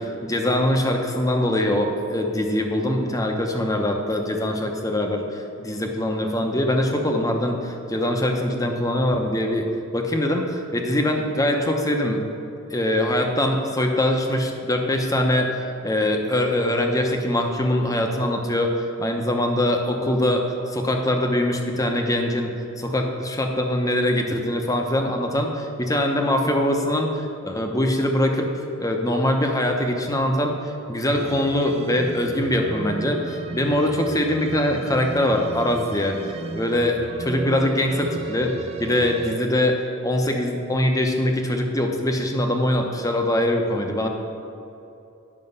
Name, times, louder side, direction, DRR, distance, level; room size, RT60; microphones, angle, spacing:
voice 1, 0.0-9.7 9.9-12.2 12.7-20.4 20.7-22.5 22.8-28.5 28.8-36.2 36.5-38.5 38.8-44.1, left 1 dB, 15° left, 3 dB, 0.9 m, -23 dB
sound 1, 31.1-39.4, right 3 dB, 30° right, 0.4 m, -35 dB
9.7 x 6.2 x 5.5 m, 2.7 s
head